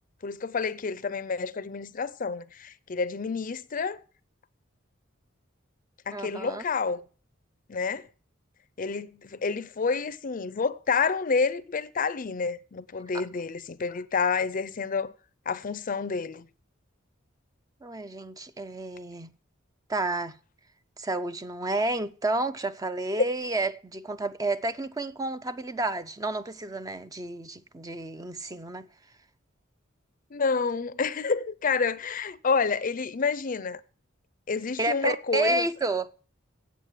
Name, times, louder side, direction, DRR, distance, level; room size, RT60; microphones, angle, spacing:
voice 1, 0.2-4.0 6.1-7.0 7.7-8.1 8.8-15.1 15.5-16.5 30.3-33.8 34.5-35.7, left 5 dB, 40° left, 0.5 m, -29 dB
voice 2, 6.1-6.6 13.1-13.2 17.8-19.3 19.9-20.4 21.0-28.9 34.8-36.1, right 2 dB, 20° right, 0.5 m, -30 dB
8.2 x 7.9 x 7.4 m
head